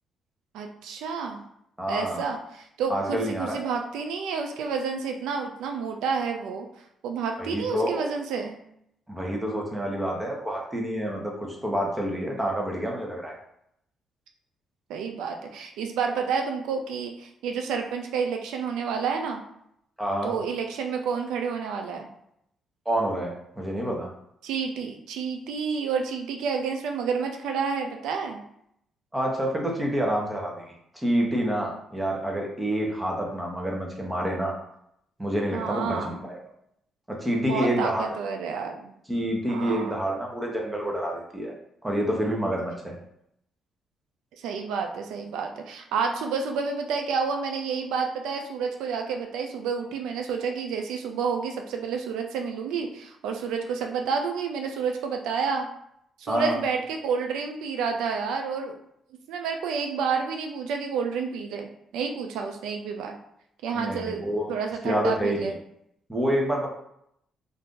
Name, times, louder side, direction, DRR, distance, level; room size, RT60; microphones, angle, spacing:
voice 1, 0.5-1.4 1.9-6.7 7.0-8.6 14.9-19.4 20.2-22.1 24.4-28.4 35.5-36.2 37.5-38.9 39.5-40.0 44.4-55.7 56.2-58.8 59.3-63.2 63.6-65.6, right 5 dB, 90° right, 4 dB, 0.3 m, -30 dB
voice 2, 1.8-2.3 2.9-3.6 7.4-8.0 9.1-13.4 20.0-20.4 22.8-24.1 29.1-34.5 35.2-36.4 37.1-38.1 39.1-41.5 41.8-43.0 56.3-56.6 63.7-64.5 64.8-65.5 66.1-66.7, equal, 10° right, -1 dB, 0.8 m, -28 dB
2.5 x 2.5 x 3.6 m, 0.76 s
cardioid pair, 90°, 0 cm